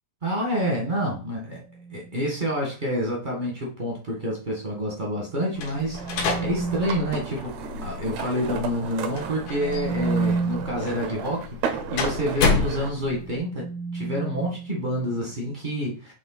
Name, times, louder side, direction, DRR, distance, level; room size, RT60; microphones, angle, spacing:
voice 1, 0.2-1.6 1.9-7.5 7.8-13.7 13.9-16.1, equal, 30° right, -2 dB, 0.8 m, -28 dB
sound 1, 1.7-2.2 5.3-7.1 9.3-10.9 12.9-15.3, right 4 dB, 5° left, 0.5 m, -31 dB
sound 2, 5.6-13.4, left 4 dB, 70° left, 2.7 m, -30 dB
sound 3, 5.9-12.9, right 7 dB, 70° right, 1.7 m, -34 dB
7.5 x 3.2 x 4.0 m, 0.38 s
omnidirectional pair, 3.6 m